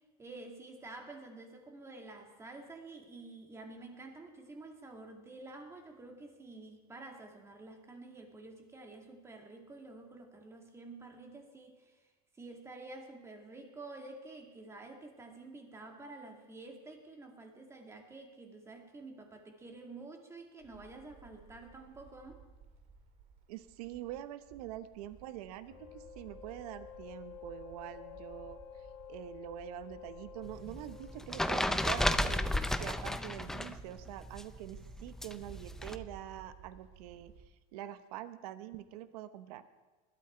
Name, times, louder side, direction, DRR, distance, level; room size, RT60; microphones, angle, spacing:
voice 1, 0.2-12.0 12.4-22.4, right 2 dB, 15° right, 3 dB, 2.2 m, -49 dB
sound 1, 20.6-37.5, right 6 dB, 40° right, 2.0 m, -56 dB
voice 2, 23.5-39.6, right 13 dB, 85° right, 12 dB, 1.0 m, -45 dB
sound 2, 25.7-33.0, left 10 dB, 30° left, 1.3 m, -51 dB
sound 3, 30.4-33.8 34.0-35.9, left 1 dB, ahead, 0.5 m, -33 dB
20.5 x 13.0 x 4.5 m, 1.3 s
supercardioid pair, 150°, 19 cm